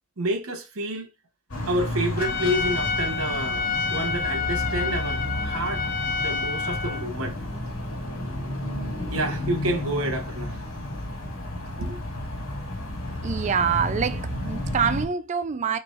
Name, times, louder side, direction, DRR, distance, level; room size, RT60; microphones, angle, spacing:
voice 1, 0.2-1.1 1.7-5.9 6.2-7.4 9.1-10.6 11.8-12.0, right 1 dB, 75° right, 0.9 m, -29 dB
sound 1, 1.5-15.0, left 1 dB, 85° left, 1.8 m, -32 dB
Trumpet, 2.2-7.1, left 5 dB, 40° left, 0.4 m, -28 dB
voice 2, 13.2-15.8, right 6 dB, 35° right, 0.3 m, -25 dB
4.7 x 3.3 x 2.4 m
head